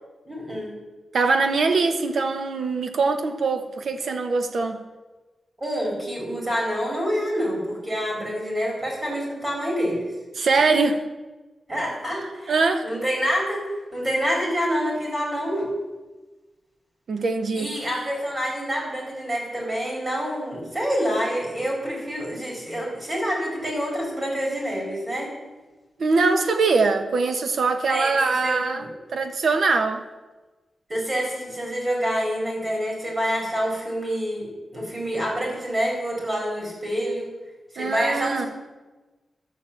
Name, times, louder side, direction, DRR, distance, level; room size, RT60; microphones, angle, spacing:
voice 1, 0.3-0.7 5.6-10.0 11.7-12.5 12.8-13.6 13.9-15.7 17.5-25.3 27.9-28.1 28.4-28.9 30.9-37.2 37.7-38.5, equal, 25° right, -2 dB, 4.5 m, -27 dB
voice 2, 1.1-4.8 10.3-11.0 12.5-12.9 17.1-17.7 26.0-28.9 29.1-30.0 37.8-38.5, right 4 dB, 65° right, 7 dB, 1.2 m, -22 dB
12.5 x 6.8 x 8.5 m, 1.2 s
wide cardioid pair, 175°, 0 cm